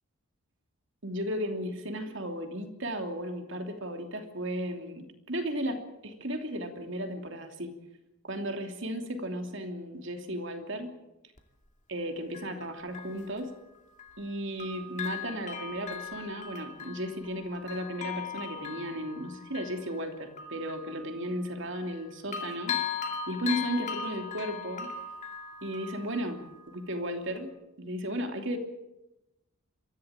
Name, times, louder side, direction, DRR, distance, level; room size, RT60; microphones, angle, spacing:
voice 1, 1.0-7.8 8.2-10.9 11.9-13.5 14.2-22.8 23.3-24.9 25.6-27.5 27.8-28.6, equal, 55° right, 5 dB, 2.9 m, -35 dB
Bell, 11.4-11.5 12.3-14.3 14.6-22.0 22.3-26.9 27.4-27.5, left 6 dB, 35° left, 2.4 m, -39 dB
23.5 x 15.5 x 8.9 m, 0.95 s
head